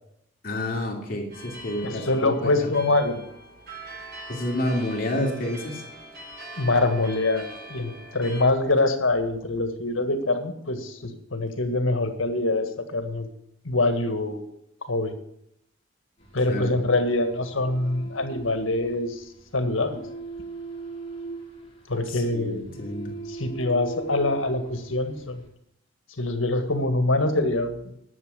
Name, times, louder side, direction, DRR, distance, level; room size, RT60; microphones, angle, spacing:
voice 1, 0.4-2.7 4.3-5.8 16.5-16.8 22.1-23.2, left 1 dB, 45° left, 0 dB, 2.8 m, -29 dB
sound 1, 1.3-8.4, right 1 dB, 50° right, 4.5 m, -42 dB
voice 2, 1.8-3.2 6.6-13.3 13.6-14.4 14.8-15.1 16.3-20.0 21.9-22.8 23.3-25.5 26.2-27.9, left 2 dB, 85° left, 7 dB, 1.8 m, -25 dB
sound 2, 16.2-25.5, right 3 dB, 30° left, 3.2 m, -41 dB
11.0 x 7.3 x 8.2 m, 0.74 s
head